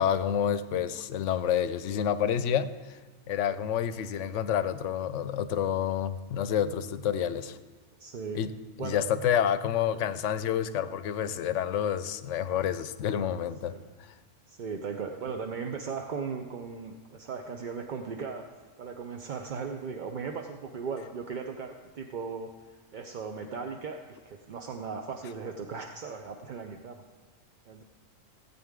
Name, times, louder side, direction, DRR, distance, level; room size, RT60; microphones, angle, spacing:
voice 1, 0.0-3.0 3.3-7.6 8.3-8.5 8.8-13.7, left 9 dB, 70° left, 13 dB, 0.9 m, -28 dB
voice 2, 8.0-8.4 8.8-9.0 13.1-13.2 13.7-13.9 14.5-18.5 18.8-27.0 27.7-27.8, right 5 dB, 50° right, 3 dB, 0.6 m, -37 dB
16.5 x 8.6 x 3.6 m, 1.4 s
omnidirectional pair, 1.3 m